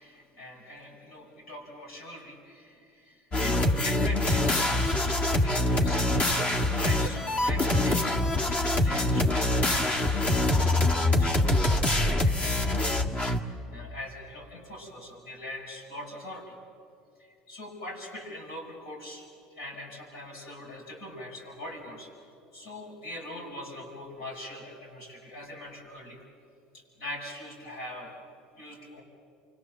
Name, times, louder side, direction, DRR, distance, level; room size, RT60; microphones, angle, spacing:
voice 1, 0.0-11.3 11.8-12.9 13.3-16.6 17.5-19.3 19.6-22.1 22.5-26.2 26.7-28.1 28.6-29.0, left 1 dB, 85° left, -3 dB, 6.8 m, -42 dB
sound 1, 3.3-13.4, left 1 dB, 40° left, 1.9 m, -25 dB
28.5 x 24.0 x 7.4 m, 2.4 s
supercardioid pair, 95°, 3 cm